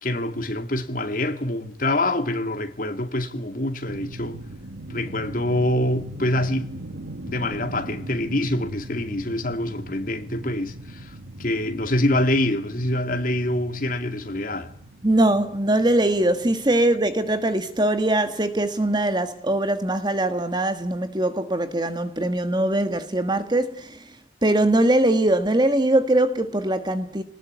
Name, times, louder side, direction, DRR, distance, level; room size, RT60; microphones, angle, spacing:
voice 1, 0.0-4.4 4.9-6.7 7.2-11.1 11.4-14.7, left 1 dB, 50° left, 2.3 m, -25 dB
sound 1, 3.9-19.3, right 1 dB, 85° right, 1.4 m, -41 dB
voice 2, 15.0-24.1 24.4-27.2, right 1 dB, 25° right, 1.4 m, -22 dB
29.5 x 20.0 x 9.4 m
head